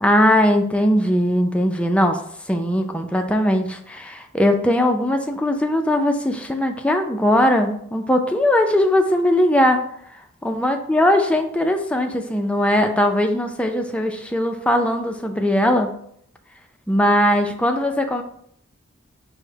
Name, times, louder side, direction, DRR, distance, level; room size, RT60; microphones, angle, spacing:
voice 1, 0.0-2.2 2.5-9.8 10.4-15.9 16.9-18.2, left 1 dB, 5° left, 4 dB, 0.4 m, -19 dB
4.9 x 2.1 x 4.5 m, 0.67 s
head